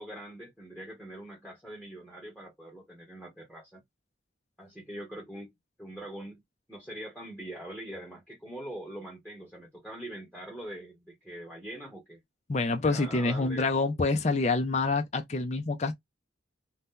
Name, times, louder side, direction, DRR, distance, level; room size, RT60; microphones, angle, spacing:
voice 1, 0.0-3.8 4.6-5.5 5.8-6.4 6.7-12.2 12.8-13.7, right 1 dB, 5° left, 1.0 m, -43 dB
voice 2, 12.5-15.9, left 3 dB, 35° left, 0.5 m, -27 dB
2.8 x 2.1 x 3.6 m
head